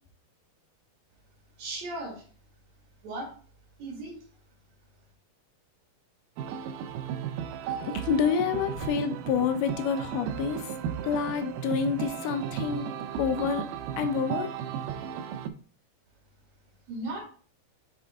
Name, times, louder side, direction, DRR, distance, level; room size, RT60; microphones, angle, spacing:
voice 1, 1.6-2.3 3.0-3.3 3.8-4.2 16.9-17.2, right 2 dB, 55° right, -1 dB, 2.8 m, -36 dB
sound 1, 6.4-15.5, right 9 dB, 80° right, 2.0 m, -35 dB
voice 2, 7.8-10.6 11.0-12.9 13.2-13.6 14.0-14.5, left 6 dB, 90° left, 7 dB, 2.6 m, -28 dB
7.1 x 4.3 x 3.5 m, 0.42 s
omnidirectional pair, 4.2 m